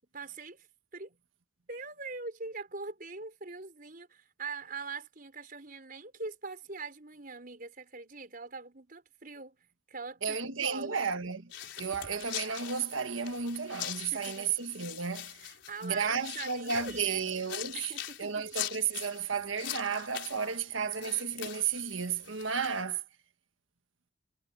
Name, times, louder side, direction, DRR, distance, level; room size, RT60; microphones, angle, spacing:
voice 1, 0.1-0.7 0.9-1.1 1.7-9.6 9.9-11.0 14.1-14.6 15.4-17.2 17.7-18.5, right 4 dB, 45° right, 5.2 m, -43 dB
voice 2, 10.2-11.5 11.8-15.4 15.8-17.9 18.2-23.0, right 6 dB, 75° right, 1.5 m, -33 dB
sound 1, 11.5-22.8, left 11 dB, 60° left, 5.0 m, -43 dB
head